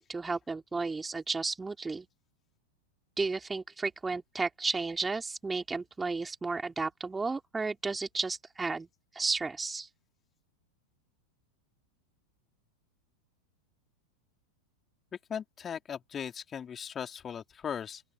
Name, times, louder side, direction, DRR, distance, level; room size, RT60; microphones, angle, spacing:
voice 1, 0.0-2.1 3.2-8.9 9.1-9.9, right 4 dB, 10° right, 4.0 m, -33 dB
voice 2, 15.3-18.0, left 8 dB, 20° left, 3.3 m, -38 dB
open air
figure-of-eight pair, 90°, 0 cm